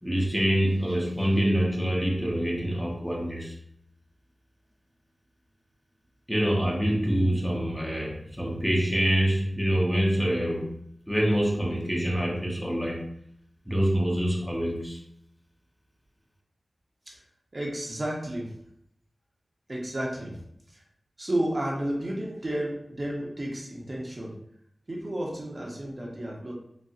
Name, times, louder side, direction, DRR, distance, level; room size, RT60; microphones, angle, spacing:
voice 1, 0.0-3.6 6.3-10.8 11.1-13.1 13.7-15.0, equal, 5° left, -3 dB, 0.6 m, -26 dB
voice 2, 17.5-18.5 19.7-20.4 20.7-20.8 21.2-24.4 24.9-26.5, right 1 dB, 40° right, -2 dB, 0.7 m, -32 dB
4.0 x 2.0 x 2.4 m, 0.71 s
wide cardioid pair, 90°, 0 cm